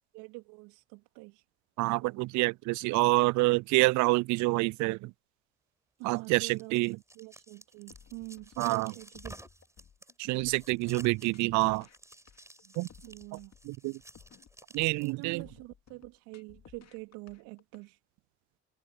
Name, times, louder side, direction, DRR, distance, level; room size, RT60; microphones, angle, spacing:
voice 1, 0.1-1.4 6.0-6.8 7.1-9.4 12.6-12.7 13.0-13.5 15.0-18.0, right 26 dB, 70° right, 3.2 m, -45 dB
voice 2, 1.8-5.1 6.0-7.0 8.6-8.9 10.2-11.9 12.8-12.9 13.6-14.0 14.7-15.4, right 23 dB, 55° right, 0.4 m, -27 dB
sound 1, 6.0-15.4, right 1 dB, 10° right, 6.6 m, -53 dB
sound 2, 7.9-17.8, left 8 dB, 50° left, 3.0 m, -58 dB
hypercardioid pair, 45°, 34 cm